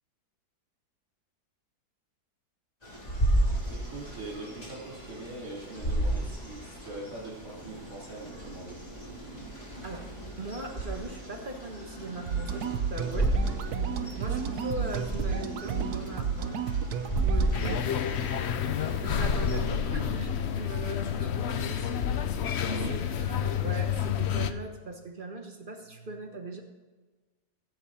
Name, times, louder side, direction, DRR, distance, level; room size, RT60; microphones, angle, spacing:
sound 1, 2.8-19.8, right 1 dB, 25° left, 3.6 m, -33 dB
voice 1, 3.7-8.8 22.6-22.9, right 2 dB, 55° right, -5 dB, 3.7 m, -42 dB
voice 2, 10.4-13.3 14.2-16.6 17.2-17.8 19.0-22.0 22.9-26.6, right 2 dB, 35° right, 3 dB, 1.4 m, -40 dB
sound 2, 12.3-17.8, right 7 dB, 75° right, 1.3 m, -32 dB
sound 3, 17.5-24.5, left 8 dB, 55° left, 0.8 m, -29 dB
15.5 x 7.9 x 4.3 m, 1.3 s
omnidirectional pair, 1.7 m